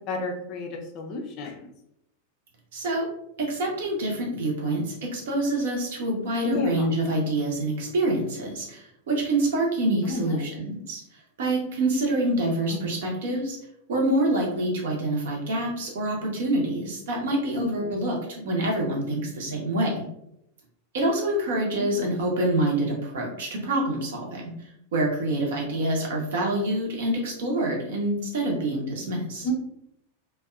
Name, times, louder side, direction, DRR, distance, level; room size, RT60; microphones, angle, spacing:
voice 1, 0.0-1.7 6.5-6.9 10.1-10.4 12.7-12.8 17.4-17.9 21.7-21.9 29.4-29.5, left 2 dB, 40° left, 2 dB, 0.4 m, -31 dB
voice 2, 2.7-3.0 3.4-11.0 11.4-13.6 13.9-20.0 20.9-24.5 24.9-29.5, right 1 dB, 60° right, -1 dB, 0.7 m, -26 dB
2.7 x 2.2 x 2.3 m, 0.78 s
figure-of-eight pair, 90°, 0 cm